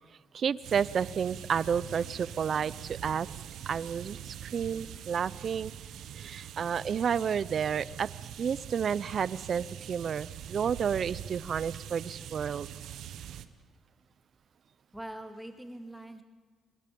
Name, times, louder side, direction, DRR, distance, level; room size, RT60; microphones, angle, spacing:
voice 1, 0.3-3.3 3.7-5.7 6.2-8.1 8.4-12.7, right 7 dB, 55° right, 18 dB, 0.6 m, -31 dB
sound 1, 0.6-13.5, right 10 dB, 80° right, 1.0 m, -43 dB
voice 2, 14.9-16.2, right 1 dB, 5° right, 4 dB, 2.4 m, -43 dB
26.5 x 21.0 x 5.4 m, 1.5 s
cardioid pair, 90°, 0 cm